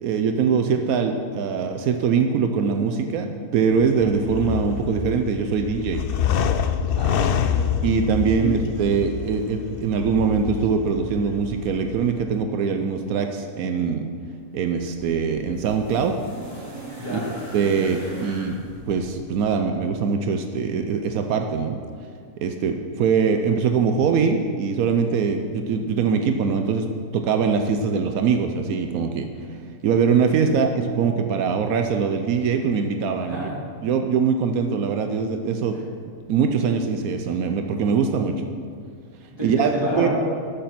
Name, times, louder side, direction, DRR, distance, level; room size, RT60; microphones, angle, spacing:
voice 1, 0.0-3.3 3.5-6.0 7.8-14.1 14.5-16.2 17.1-17.2 17.5-18.6 18.9-21.8 22.4-26.9 27.1-29.3 29.8-33.5 33.8-35.8 36.3-38.4 39.4-39.7 40.0-40.1, right 6 dB, 85° right, 6 dB, 1.1 m, -22 dB
sound 1, 3.7-12.2, left 8 dB, 65° left, 0.5 m, -27 dB
voice 2, 7.0-7.7 8.4-8.5 17.0-17.2 33.3-33.5 39.4-40.1, right 1 dB, 15° right, -7 dB, 3.3 m, -29 dB
sound 2, 14.5-19.7 20.8-20.9, right 1 dB, 55° right, 3.7 m, -40 dB
13.0 x 6.8 x 5.9 m, 2.1 s
omnidirectional pair, 1.5 m